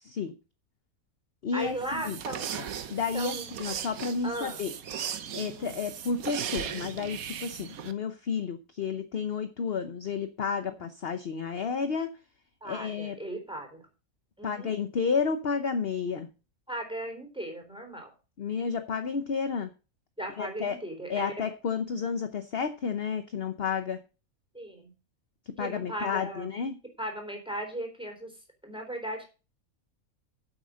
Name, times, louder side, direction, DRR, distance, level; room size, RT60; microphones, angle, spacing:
voice 1, 0.0-0.3 1.4-2.2 2.5-4.7 5.3-12.1 12.6-13.2 14.4-16.3 18.4-19.7 20.4-20.8 21.1-24.0 25.6-26.7, left 5 dB, 50° left, 9 dB, 1.0 m, -31 dB
voice 2, 1.5-2.5 3.1-3.5 4.2-4.7 5.5-5.8 10.7-10.8 12.6-13.9 14.4-14.7 16.7-18.1 20.2-21.3 24.5-24.9 25.6-26.5 27.0-28.3 28.6-29.2, right 1 dB, 5° right, 3 dB, 3.7 m, -37 dB
sound 1, 1.6-7.9, right 8 dB, 75° right, 1.4 m, -37 dB
9.4 x 7.9 x 6.3 m, 0.33 s
omnidirectional pair, 1.5 m